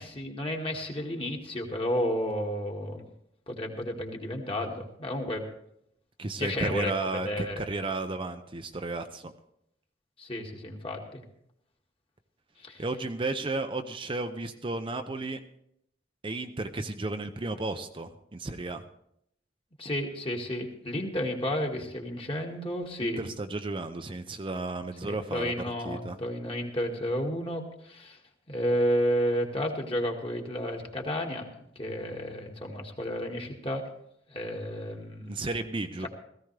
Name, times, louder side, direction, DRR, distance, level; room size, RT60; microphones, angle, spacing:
voice 1, 0.0-3.1 3.5-5.4 6.4-7.6 10.2-11.2 12.6-12.8 19.8-23.2 25.0-28.2 28.5-31.5 31.8-33.9 34.3-35.5, equal, 30° left, 1 dB, 1.9 m, -32 dB
voice 2, 6.2-9.3 12.8-15.4 16.2-18.8 23.0-25.5 25.8-26.2 35.2-36.1, right 2 dB, 30° right, 7 dB, 0.6 m, -33 dB
17.0 x 15.0 x 3.3 m, 0.75 s
head